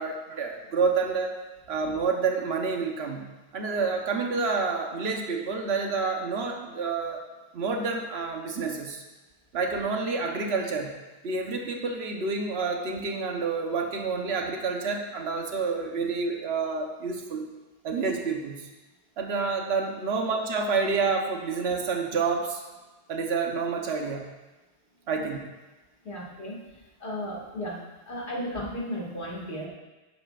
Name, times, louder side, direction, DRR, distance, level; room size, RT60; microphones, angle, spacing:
voice 1, 0.0-1.4 1.7-3.2 3.5-7.2 7.5-9.0 9.5-10.9 11.2-17.5 17.8-18.7 19.2-22.6 23.1-24.3 25.1-25.4, right 4 dB, 70° right, 2 dB, 1.3 m, -28 dB
voice 2, 26.0-26.7 27.0-27.8 28.1-29.7, equal, 75° left, -4 dB, 2.6 m, -34 dB
11.5 x 10.0 x 2.5 m, 1.1 s
omnidirectional pair, 1.1 m